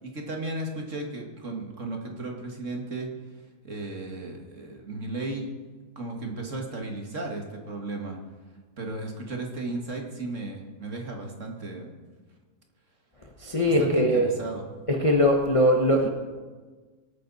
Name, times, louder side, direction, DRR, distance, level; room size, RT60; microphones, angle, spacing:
voice 1, 0.0-3.1 3.6-5.5 6.0-8.2 8.8-11.9 13.8-14.6, right 2 dB, 50° right, 1 dB, 2.2 m, -35 dB
voice 2, 13.4-14.3 14.9-16.1, equal, 20° left, 1 dB, 1.0 m, -21 dB
23.5 x 9.5 x 4.2 m, 1.4 s
omnidirectional pair, 1.8 m